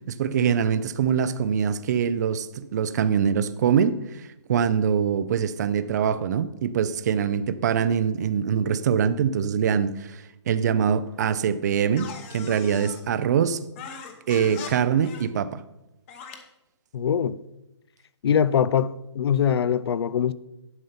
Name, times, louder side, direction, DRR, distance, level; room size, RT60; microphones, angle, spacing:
voice 1, 0.1-13.6 14.3-15.6, right 7 dB, 35° right, 0.5 m, -24 dB
sound 1, 12.0-13.0 13.8-14.7 15.0-15.3 16.1-16.4, left 7 dB, 25° left, 1.0 m, -40 dB
voice 2, 16.9-17.3 18.2-20.3, left 8 dB, 55° left, 0.5 m, -22 dB
11.0 x 5.5 x 5.7 m
hypercardioid pair, 160°, 15 cm